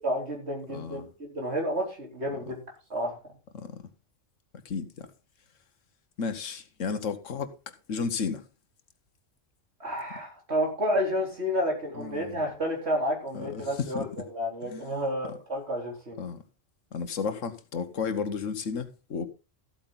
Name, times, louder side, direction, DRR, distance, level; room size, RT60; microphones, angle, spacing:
voice 1, 0.0-2.6 2.9-3.2 9.8-16.2, equal, 55° right, 4.0 m, -30 dB
voice 2, 0.7-1.1 3.5-3.8 4.6-5.1 6.2-7.5 7.9-8.4 12.0-12.4 13.3-14.3 14.6-14.8 16.2-16.4 16.9-19.3, left 5 dB, 75° left, 1.5 m, -33 dB
14.0 x 8.5 x 3.9 m
omnidirectional pair, 1.3 m